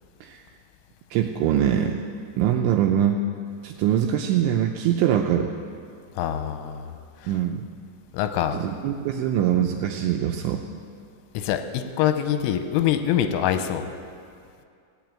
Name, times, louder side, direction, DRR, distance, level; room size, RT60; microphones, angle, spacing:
voice 1, 1.1-2.0 2.4-3.2 3.6-5.5 7.3-7.7 8.5-10.6, right 10 dB, 85° right, 3 dB, 2.7 m, -23 dB
voice 2, 6.2-6.8 8.1-8.6 11.3-13.9, left 10 dB, 90° left, 8 dB, 3.2 m, -24 dB
15.5 x 9.2 x 8.6 m, 2.3 s
omnidirectional pair, 5.8 m